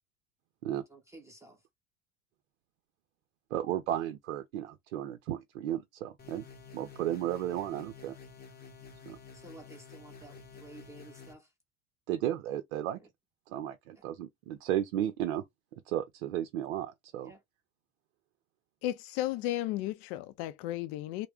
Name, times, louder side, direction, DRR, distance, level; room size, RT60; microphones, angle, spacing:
voice 1, 0.9-1.6 9.3-11.5 13.0-13.1 13.9-14.0 17.2-17.4, right 2 dB, 5° right, 0.8 m, -52 dB
voice 2, 3.5-6.5 6.7-8.2 9.1-9.2 12.1-13.0 13.5-15.4 15.9-17.3, right 12 dB, 60° right, 0.6 m, -34 dB
sound 1, 6.2-11.3, left 5 dB, 25° left, 0.9 m, -51 dB
voice 3, 18.8-21.3, left 14 dB, 45° left, 0.5 m, -34 dB
3.2 x 2.1 x 3.4 m
figure-of-eight pair, 70°, 41 cm